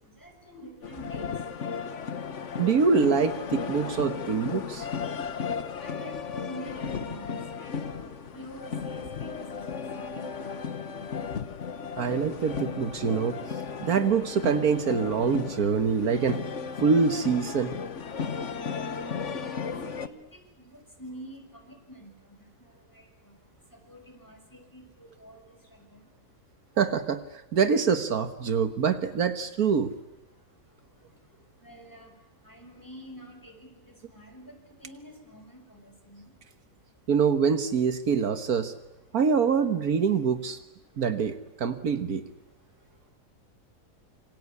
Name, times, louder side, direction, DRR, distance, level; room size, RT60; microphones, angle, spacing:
voice 1, 0.2-1.3 5.8-10.5 19.4-22.5 22.9-23.0 23.7-25.5 25.9-26.0 31.6-32.1 32.4-36.2, equal, 10° left, 3 dB, 6.0 m, -47 dB
sound 1, 0.8-20.1, left 6 dB, 55° left, 1.6 m, -35 dB
voice 2, 2.6-4.9 12.0-13.4 13.8-16.4 16.8-17.7 26.8-27.2 27.5-29.9 37.1-38.7 39.1-40.6 41.0-42.2, right 6 dB, 75° right, 9 dB, 1.8 m, -25 dB
27.0 x 25.5 x 8.5 m, 0.98 s
omnidirectional pair, 1.6 m